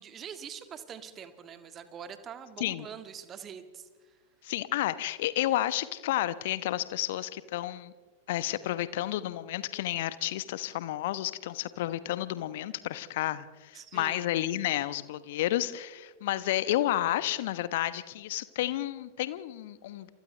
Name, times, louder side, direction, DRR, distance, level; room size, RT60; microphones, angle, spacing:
voice 1, 0.0-4.2 13.7-14.3, right 8 dB, 25° right, 9 dB, 1.8 m, -44 dB
voice 2, 4.4-7.9 8.3-20.1, left 14 dB, 55° left, 15 dB, 1.1 m, -31 dB
29.0 x 27.0 x 3.4 m, 1.4 s
figure-of-eight pair, 90°, 0 cm